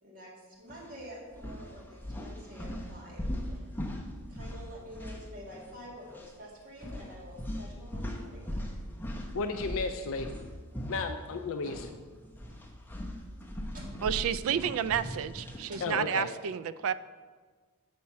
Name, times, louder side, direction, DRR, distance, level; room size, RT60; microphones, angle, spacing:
voice 1, 0.0-3.6 4.3-8.6 11.6-11.7 13.7-13.9 15.7-15.8, equal, 40° right, -5 dB, 2.2 m, -48 dB
sound 1, 0.7-0.9 1.3-5.8 6.1-6.3 6.8-11.9 12.2-15.7, equal, 10° left, 0.7 m, -39 dB
voice 2, 9.3-10.3 10.9-11.9 15.8-16.3, left 4 dB, 65° left, 7 dB, 0.4 m, -33 dB
voice 3, 14.0-16.9, right 8 dB, 65° right, 15 dB, 0.3 m, -30 dB
7.3 x 4.3 x 5.7 m, 1.5 s
head